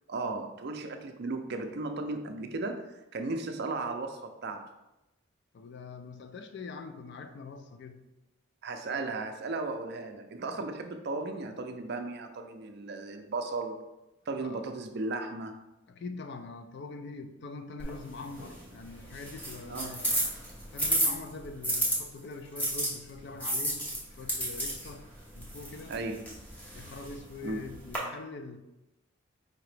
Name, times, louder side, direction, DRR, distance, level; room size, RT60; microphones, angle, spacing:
voice 1, 0.1-4.6 8.6-13.9 14.3-15.5 19.7-20.0 25.9-26.4 27.4-27.6, right 3 dB, 50° right, 6 dB, 0.4 m, -35 dB
voice 2, 5.5-8.0 10.6-10.7 14.4-14.6 15.9-20.2 20.7-23.9 24.2-25.1 25.3-25.9 26.7-28.6, left 3 dB, 55° left, 8 dB, 0.4 m, -43 dB
sound 1, 17.8-22.0 22.6-28.0, right 1 dB, 10° left, 0.9 m, -33 dB
4.8 x 2.9 x 3.2 m, 0.97 s
head